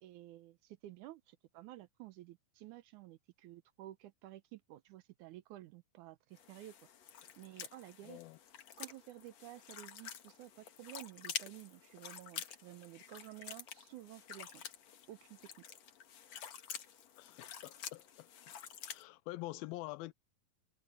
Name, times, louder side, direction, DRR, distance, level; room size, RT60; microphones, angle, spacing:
voice 1, 0.0-6.8 7.4-8.2 8.8-14.6 15.1-15.5, right 15 dB, 80° right, 1.9 m, -52 dB
sound 1, 6.4-19.0, left 9 dB, 55° left, 2.4 m, -49 dB
voice 2, 8.0-8.4 17.2-18.5 18.9-20.1, left 18 dB, 90° left, 2.5 m, -46 dB
omnidirectional pair, 4.1 m